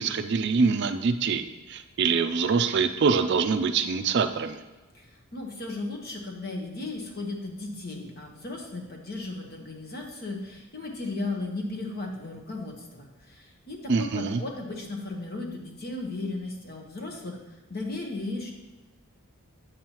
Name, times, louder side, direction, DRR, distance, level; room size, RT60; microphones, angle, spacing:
voice 1, 0.0-4.6 13.9-14.4, right 5 dB, 50° right, 9 dB, 0.4 m, -25 dB
voice 2, 4.9-17.4 17.7-18.5, left 2 dB, 45° left, 1 dB, 1.1 m, -35 dB
8.4 x 7.3 x 3.0 m, 1.2 s
head